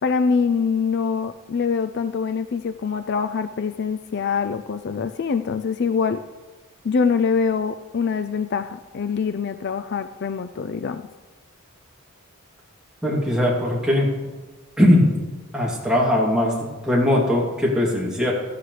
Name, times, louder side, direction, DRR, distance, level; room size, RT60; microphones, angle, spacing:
voice 1, 0.0-6.2 6.8-11.0, left 5 dB, 50° left, 10 dB, 0.4 m, -24 dB
voice 2, 13.0-14.3 14.8-15.1 15.5-18.3, left 1 dB, 5° right, -4 dB, 2.7 m, -20 dB
16.0 x 13.5 x 3.3 m, 1.3 s
head